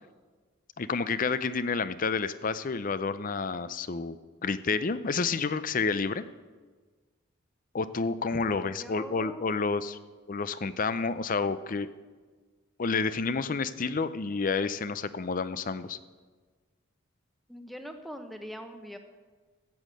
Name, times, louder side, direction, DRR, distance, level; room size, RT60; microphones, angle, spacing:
voice 1, 0.8-4.2 4.4-6.2 7.7-10.0 10.3-11.9 12.8-16.0, left 4 dB, 40° left, 14 dB, 0.5 m, -29 dB
voice 2, 8.8-9.5 17.5-19.0, equal, ahead, 6 dB, 1.0 m, -42 dB
14.0 x 8.4 x 7.6 m, 1.4 s
head